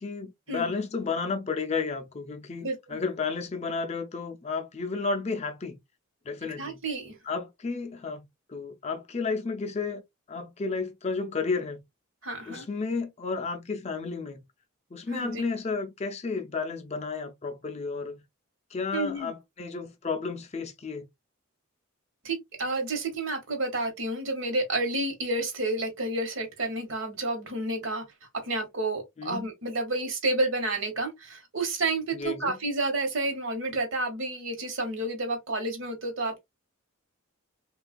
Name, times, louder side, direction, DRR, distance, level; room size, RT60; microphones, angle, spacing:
voice 1, 0.0-5.8 6.3-6.8 7.2-10.0 10.3-11.8 12.5-14.4 14.9-18.2 18.7-21.1 29.2-29.5 32.1-32.5, left 4 dB, 30° left, 0.4 m, -32 dB
voice 2, 2.6-3.0 6.6-7.2 12.2-12.6 15.1-15.4 18.9-19.3 22.2-28.0 28.3-36.4, right 2 dB, 60° right, 1.0 m, -30 dB
3.2 x 2.3 x 2.4 m
head